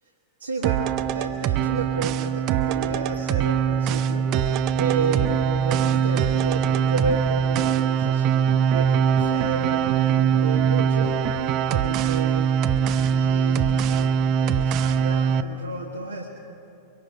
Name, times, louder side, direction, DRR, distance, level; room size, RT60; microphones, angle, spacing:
voice 1, 0.4-4.3 4.7-11.1 11.7-12.5 12.9-16.3, right 4 dB, 75° right, -1 dB, 1.6 m, -31 dB
sound 1, 0.6-15.4, right 8 dB, 40° right, 0.7 m, -22 dB
24.0 x 23.5 x 4.9 m, 2.7 s
figure-of-eight pair, 90°, 0 cm